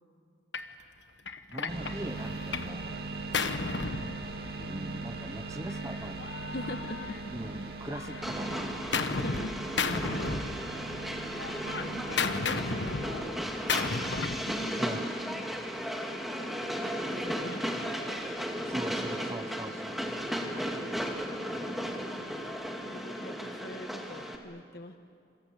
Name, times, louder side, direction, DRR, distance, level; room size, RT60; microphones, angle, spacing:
Gunshot gunfire, 0.5-0.7 1.3-2.8 3.0-4.8 5.7-7.5 7.9-9.5 9.8-11.0 11.3-14.5, left 4 dB, 90° left, 1.3 m, -34 dB
voice 1, 1.5-3.0 4.6-6.3 7.3-8.9 14.8-15.1 18.7-20.1, right 1 dB, 15° right, 12 dB, 0.7 m, -40 dB
sound 1, 1.7-13.3, right 3 dB, 60° right, 2.6 m, -40 dB
voice 2, 6.5-7.3 9.1-10.0 11.6-13.4 14.2-14.9 15.2-15.8 16.1-16.5 17.1-17.8 22.1-22.4 22.8-25.0, left 1 dB, 60° left, 6 dB, 1.1 m, -43 dB
Train, 8.2-24.4, equal, ahead, 2.2 m, -35 dB
27.5 x 24.5 x 8.5 m, 2.4 s
head